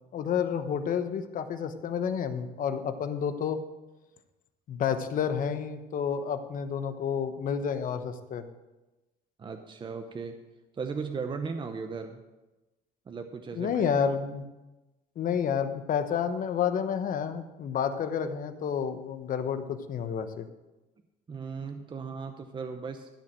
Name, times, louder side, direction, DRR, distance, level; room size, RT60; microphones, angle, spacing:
voice 1, 0.1-3.6 4.7-8.4 13.6-14.4 15.2-20.5, left 7 dB, 55° left, 9 dB, 1.0 m, -30 dB
voice 2, 9.4-10.4 10.7-12.2 13.1-13.9 21.3-23.1, right 5 dB, 30° right, 6 dB, 0.8 m, -37 dB
13.0 x 4.9 x 7.5 m, 1.1 s
cardioid pair, 110°, 17 cm